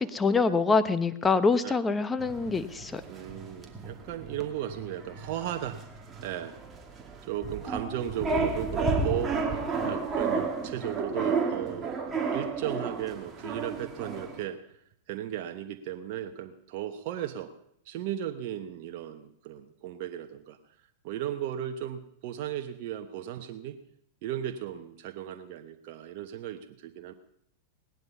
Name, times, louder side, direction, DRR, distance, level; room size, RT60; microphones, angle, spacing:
voice 1, 0.0-3.0, left 4 dB, 15° left, 12 dB, 0.9 m, -25 dB
sound 1, 2.2-14.4, right 4 dB, 20° right, 2.3 m, -32 dB
voice 2, 3.1-5.8 6.2-6.6 7.2-9.4 9.8-12.0 12.3-14.6 15.1-17.5 17.8-20.6 21.0-23.8 24.2-27.1, right 11 dB, 55° right, 6 dB, 1.0 m, -35 dB
18.0 x 10.5 x 5.5 m, 0.73 s
hypercardioid pair, 120°, 0 cm